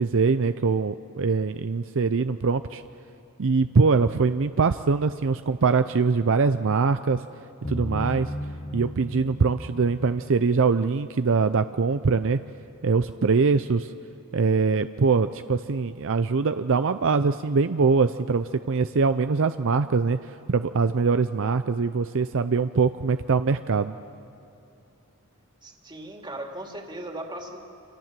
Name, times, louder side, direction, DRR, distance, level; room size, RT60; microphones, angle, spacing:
voice 1, 0.0-2.8 3.4-7.2 7.7-8.3 8.7-12.4 12.8-13.9 14.3-24.0, right 4 dB, 60° right, 10 dB, 0.5 m, -23 dB
sound 1, 7.6-11.4, equal, 25° left, 0.8 m, -36 dB
voice 2, 25.6-27.6, right 1 dB, 20° right, 2 dB, 2.8 m, -37 dB
28.5 x 26.5 x 7.5 m, 2.7 s
head